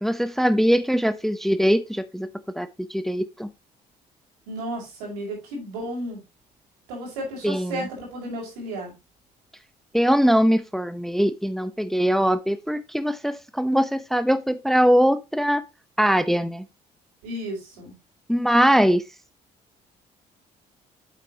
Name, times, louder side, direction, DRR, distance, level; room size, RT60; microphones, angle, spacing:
voice 1, 0.0-3.5 7.4-7.9 9.9-15.6 16.0-16.7 18.3-19.0, equal, ahead, 0.8 m, -22 dB
voice 2, 4.5-6.2 6.9-8.9 17.2-17.9, right 1 dB, 85° right, 5.5 m, -33 dB
8.5 x 7.6 x 2.9 m
hypercardioid pair, 55°, 20 cm